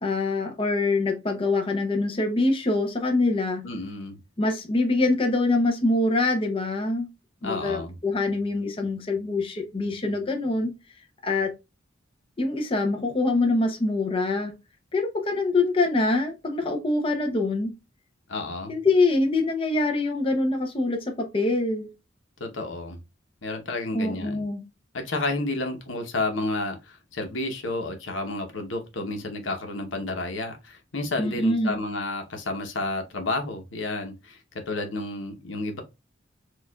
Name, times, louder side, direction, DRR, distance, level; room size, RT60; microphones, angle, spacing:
voice 1, 0.0-3.6 4.4-7.1 7.4-10.7 11.2-11.5 12.4-14.5 14.9-17.7 18.7-21.9 23.9-24.6 31.2-31.8, left 2 dB, 30° left, 0.7 m, -24 dB
voice 2, 3.6-4.2 7.4-8.0 18.3-18.7 22.4-23.0 23.4-24.4 24.9-35.8, left 2 dB, 85° left, 0.9 m, -31 dB
4.6 x 2.4 x 2.3 m
head